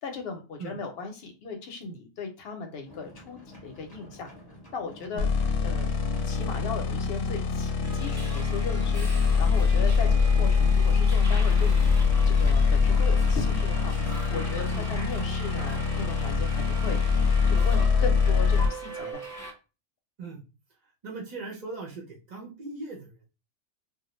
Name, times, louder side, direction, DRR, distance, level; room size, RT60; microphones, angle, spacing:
voice 1, 0.0-4.3 4.7-5.3 5.6-5.9 6.3-11.9 12.3-17.0 17.5-19.2, left 4 dB, 65° left, 4 dB, 0.7 m, -37 dB
sound 1, 2.8-14.3, left 1 dB, 25° left, 0.7 m, -50 dB
sound 2, 5.2-18.7, left 5 dB, 85° left, 0.9 m, -24 dB
Subway metro underground, 7.8-19.5, right 1 dB, 15° right, 0.9 m, -37 dB
voice 2, 21.0-23.3, right 3 dB, 50° right, -2 dB, 0.5 m, -39 dB
2.3 x 2.0 x 3.0 m, 0.31 s
omnidirectional pair, 1.3 m